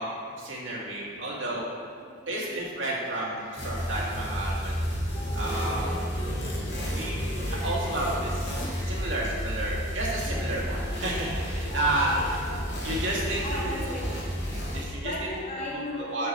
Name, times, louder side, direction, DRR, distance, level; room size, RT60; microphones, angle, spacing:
voice 1, 0.0-1.7 2.3-4.7 5.3-5.9 6.8-8.5 8.8-12.1 12.8-14.0 14.7-15.1 16.0-16.3, right 1 dB, 65° right, -5 dB, 2.4 m, -31 dB
voice 2, 2.3-2.6 3.1-4.0 5.1-5.8 6.1-6.2 7.6-8.2 8.7-9.8 10.2-10.5 11.7-12.7 13.3-14.1 15.0-16.3, left 1 dB, 35° left, -4 dB, 1.7 m, -39 dB
sound 1, 3.6-14.8, equal, 60° left, 2.2 m, -31 dB
15.0 x 6.0 x 3.1 m, 2.2 s
head